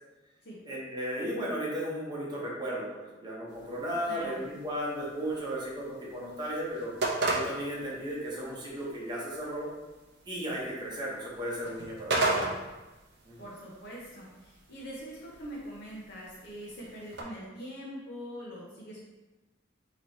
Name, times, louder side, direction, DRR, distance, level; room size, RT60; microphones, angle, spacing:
voice 1, 0.6-6.9 7.3-9.7 10.3-12.5 13.3-13.5, equal, 25° right, -6 dB, 0.9 m, -35 dB
sound 1, 3.5-17.2, right 2 dB, 60° right, 0.6 m, -37 dB
voice 2, 4.0-4.4 12.1-12.5 13.4-19.0, equal, 60° left, -5 dB, 0.8 m, -43 dB
3.0 x 3.0 x 4.0 m, 1.1 s
head